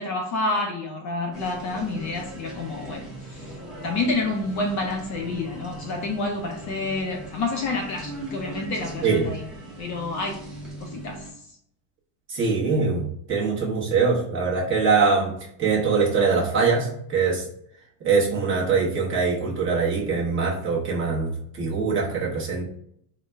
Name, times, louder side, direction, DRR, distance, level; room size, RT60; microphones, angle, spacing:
voice 1, 0.0-3.5 3.8-9.4 9.8-10.5 10.8-11.3, left 3 dB, 40° left, 2 dB, 0.5 m, -29 dB
sound 1, 1.3-11.3, right 1 dB, ahead, 0.7 m, -39 dB
voice 2, 12.3-13.0 13.3-15.3 15.6-17.4 18.0-22.6, right 5 dB, 25° right, -4 dB, 0.9 m, -23 dB
3.9 x 2.1 x 3.3 m, 0.69 s
cardioid pair, 160°, 44 cm